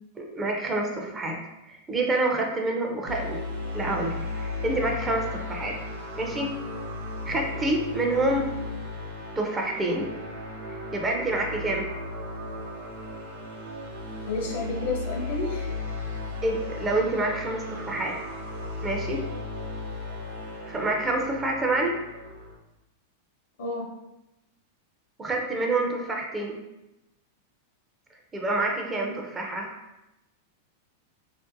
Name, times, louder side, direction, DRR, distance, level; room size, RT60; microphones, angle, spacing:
voice 1, 0.2-1.4 1.7-3.4 3.7-5.7 6.2-6.5 7.3-8.5 9.4-10.1 10.9-11.9 16.4-18.2 18.8-19.2 20.7-22.0 25.2-26.6 28.3-29.7, right 2 dB, 20° right, 1 dB, 0.4 m, -27 dB
sound 1, 3.1-22.5, left 2 dB, 85° right, 0.7 m, -35 dB
voice 2, 14.3-15.7 23.6-23.8 28.9-29.1, left 2 dB, 75° left, 0 dB, 0.7 m, -31 dB
2.5 x 2.1 x 2.6 m, 0.93 s
hypercardioid pair, 115°, 0 cm